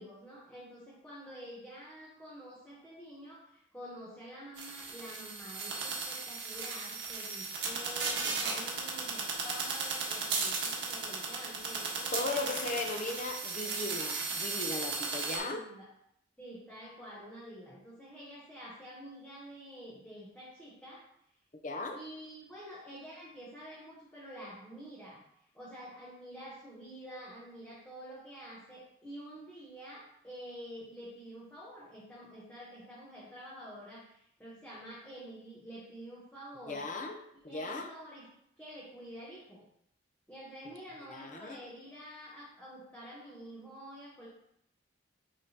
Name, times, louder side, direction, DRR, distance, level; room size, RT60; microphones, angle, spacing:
voice 1, 0.0-12.7 15.5-15.9 16.4-21.0 21.9-25.2 25.5-36.9 37.4-38.3 38.6-39.6 40.3-44.3, equal, 10° left, -7 dB, 1.0 m, -48 dB
sound 1, 4.6-15.4, right 4 dB, 75° right, 1.4 m, -36 dB
voice 2, 12.1-15.7 21.5-22.0 36.7-37.2 37.4-37.9 41.1-41.6, left 2 dB, 40° left, 4 dB, 0.6 m, -37 dB
9.6 x 3.6 x 2.9 m, 0.73 s
head